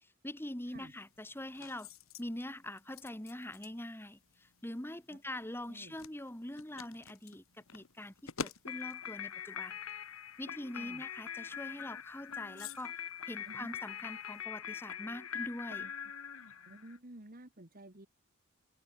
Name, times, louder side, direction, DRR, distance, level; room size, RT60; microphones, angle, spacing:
voice 1, 0.2-1.9 2.2-7.4 7.7-9.8 10.4-12.9 13.3-15.9, left 1 dB, 10° left, 1.6 m, -43 dB
sound 1, 0.7-14.4, left 5 dB, 70° left, 1.6 m, -52 dB
sound 2, 8.6-17.0, left 9 dB, 85° left, 1.5 m, -43 dB
voice 2, 16.7-18.1, right 1 dB, 45° right, 2.1 m, -52 dB
head